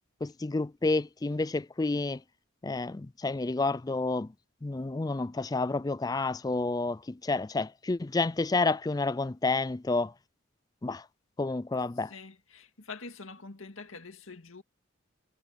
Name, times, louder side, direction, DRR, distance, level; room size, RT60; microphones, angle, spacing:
voice 1, 0.2-2.2 2.6-4.3 4.6-10.1 10.8-11.1 11.4-12.1, left 3 dB, 20° left, 0.3 m, -30 dB
voice 2, 12.1-14.6, left 4 dB, 75° left, 2.1 m, -45 dB
head